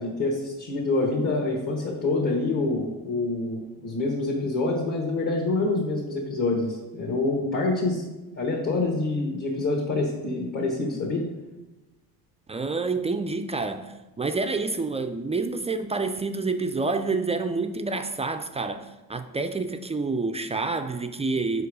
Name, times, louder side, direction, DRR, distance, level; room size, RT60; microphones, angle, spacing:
voice 1, 0.0-8.0 8.4-11.2, left 2 dB, 45° left, -2 dB, 1.5 m, -26 dB
voice 2, 12.5-21.7, right 3 dB, 15° right, 8 dB, 0.3 m, -28 dB
4.7 x 4.6 x 4.9 m, 1.1 s
supercardioid pair, 70°, 43 cm